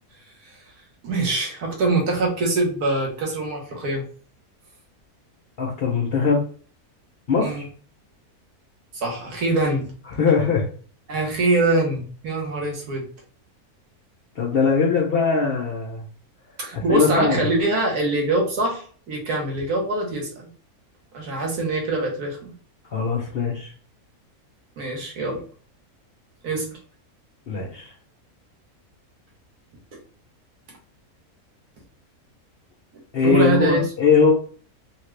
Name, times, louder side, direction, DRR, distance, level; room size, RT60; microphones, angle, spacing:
voice 1, 1.0-4.0 7.4-7.6 8.9-9.9 11.1-13.0 16.6-20.5 21.1-22.5 24.8-25.4 26.4-26.8 33.2-33.9, right 2 dB, 85° right, 0 dB, 1.6 m, -24 dB
voice 2, 5.6-6.4 7.3-7.7 10.2-10.7 14.4-16.0 16.7-17.4 22.9-23.7 27.5-27.9 33.1-34.3, left 5 dB, 55° left, 0 dB, 0.7 m, -20 dB
3.5 x 2.4 x 3.2 m, 0.43 s
omnidirectional pair, 1.6 m